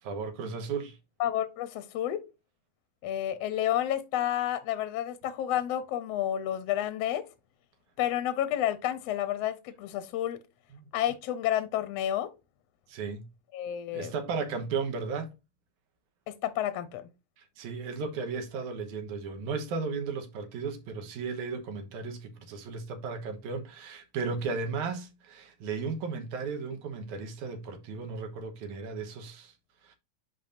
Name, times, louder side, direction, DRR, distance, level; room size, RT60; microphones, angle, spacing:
voice 1, 0.0-1.0 10.7-10.9 12.9-13.3 13.9-15.3 17.6-29.5 29.9-30.0, right 4 dB, 90° right, 2.6 m, -35 dB
voice 2, 1.2-2.2 3.0-7.2 8.0-10.4 10.9-12.3 13.5-14.1 16.3-17.1, left 11 dB, 75° left, 1.6 m, -30 dB
10.0 x 4.2 x 2.6 m
omnidirectional pair, 3.4 m